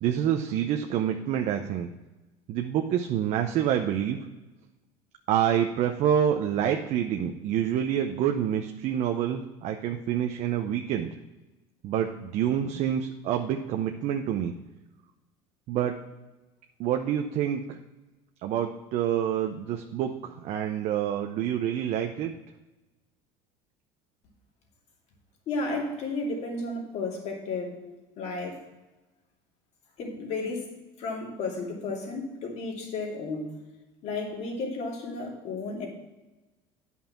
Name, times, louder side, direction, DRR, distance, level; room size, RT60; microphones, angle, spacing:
voice 1, 0.0-1.9 2.5-4.2 5.3-11.1 11.8-14.5 15.7-16.0 16.8-17.8 18.4-22.3, right 10 dB, 55° right, 4 dB, 0.7 m, -27 dB
voice 2, 25.5-28.6 30.0-30.7 31.0-33.6 34.0-35.9, left 3 dB, 50° left, -1 dB, 2.7 m, -33 dB
9.4 x 5.5 x 5.8 m, 1.1 s
cardioid pair, 130°, 14 cm